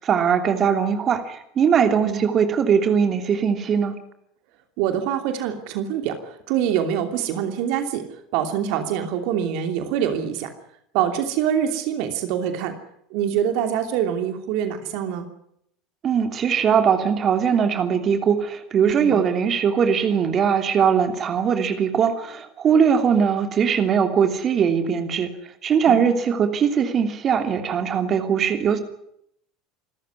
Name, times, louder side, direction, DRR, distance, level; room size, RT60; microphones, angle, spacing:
voice 1, 0.0-3.9 16.0-25.3 25.6-28.8, right 7 dB, 40° right, 7 dB, 3.0 m, -20 dB
voice 2, 2.0-2.4 4.8-10.5 10.9-12.7 13.1-15.3 19.0-19.3 25.9-26.1, right 9 dB, 60° right, 6 dB, 2.9 m, -25 dB
27.5 x 14.0 x 9.7 m, 0.72 s
hypercardioid pair, 75°, 0 cm